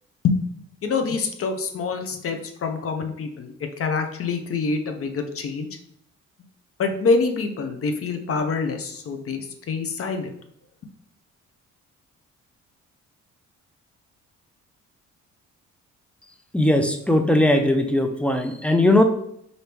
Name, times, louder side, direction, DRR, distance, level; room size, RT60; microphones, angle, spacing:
voice 1, 0.8-5.7 6.8-9.4 9.7-10.3, left 4 dB, 50° left, 6 dB, 0.7 m, -25 dB
voice 2, 16.5-19.0, left 1 dB, 5° left, 5 dB, 0.5 m, -19 dB
4.4 x 2.7 x 3.4 m, 0.71 s
cardioid pair, 90°, 30 cm